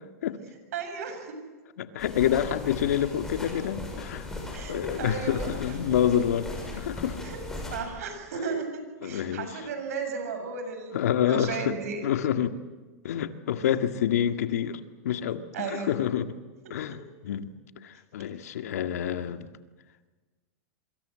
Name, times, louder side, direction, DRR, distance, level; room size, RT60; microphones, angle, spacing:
voice 1, 0.7-1.3 4.5-5.6 7.2-7.4 7.7-12.0 15.5-16.0, right 5 dB, 75° right, 6 dB, 7.7 m, -35 dB
voice 2, 1.8-4.3 4.7-7.2 9.0-9.5 10.9-11.8 12.0-12.6 13.0-16.4 16.7-17.5 17.8-19.5, left 9 dB, 80° left, 8 dB, 1.9 m, -28 dB
sound 1, 2.0-7.8, left 2 dB, 5° left, 6.3 m, -37 dB
27.0 x 25.0 x 7.7 m, 1.3 s
supercardioid pair, 155°, 8 cm